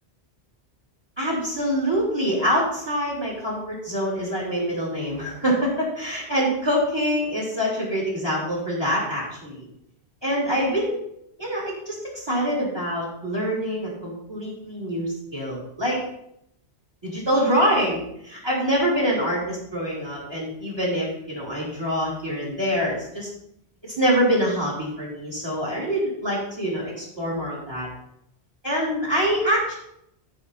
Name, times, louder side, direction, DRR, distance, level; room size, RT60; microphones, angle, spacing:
voice 1, 1.2-9.7 10.2-10.9 11.4-16.0 17.0-23.3 23.9-27.9 28.6-29.7, equal, 25° right, -4 dB, 3.6 m, -25 dB
13.0 x 5.6 x 4.2 m, 0.76 s
omnidirectional pair, 1.1 m